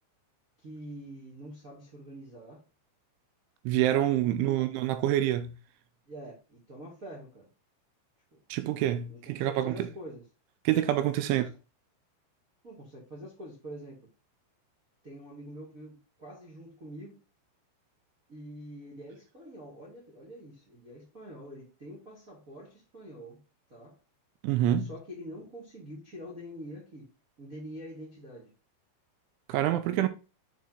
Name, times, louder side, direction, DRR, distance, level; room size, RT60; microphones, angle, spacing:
voice 1, 0.6-2.6 4.2-4.6 6.1-7.5 8.3-8.4 9.1-10.2 11.2-11.4 12.6-14.0 15.0-17.2 18.3-23.4 23.7-24.0 24.8-27.1 27.4-28.5 29.7-30.1, equal, 45° right, 1.1 m, -45 dB
voice 2, 3.7-5.6 8.5-9.7 10.7-11.5 24.4-24.9 29.5-30.1, right 12 dB, 85° right, 3.1 m, -26 dB
6.8 x 4.7 x 3.9 m
omnidirectional pair, 5.6 m